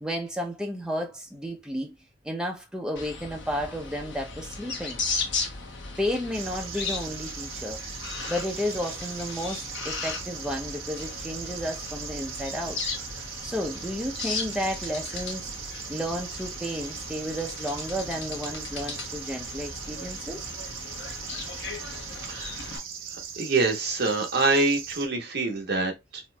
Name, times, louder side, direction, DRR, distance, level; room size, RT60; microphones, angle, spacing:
voice 1, 0.0-1.9 2.2-5.0 6.0-7.8 8.3-12.8 13.4-15.5 15.9-20.4, equal, 5° right, 0.6 m, -32 dB
sound 1, 3.0-22.8, left 4 dB, 60° left, 1.0 m, -37 dB
sound 2, 6.3-25.1, right 8 dB, 80° right, 0.8 m, -39 dB
voice 2, 22.2-22.8 23.4-26.2, right 3 dB, 55° right, 0.9 m, -26 dB
4.2 x 2.5 x 2.2 m
head